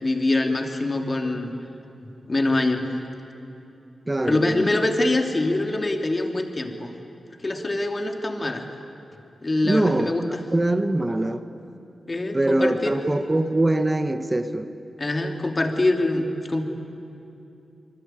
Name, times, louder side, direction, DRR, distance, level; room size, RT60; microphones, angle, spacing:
voice 1, 0.0-1.5 2.3-2.9 4.3-6.9 7.4-8.7 9.4-10.4 12.1-12.9 15.0-16.6, left 2 dB, 30° left, 3 dB, 2.7 m, -24 dB
voice 2, 4.1-4.7 9.6-11.5 12.3-14.7, right 1 dB, 20° right, 9 dB, 1.2 m, -23 dB
26.0 x 24.5 x 9.1 m, 2.8 s
wide cardioid pair, 95°, 0 cm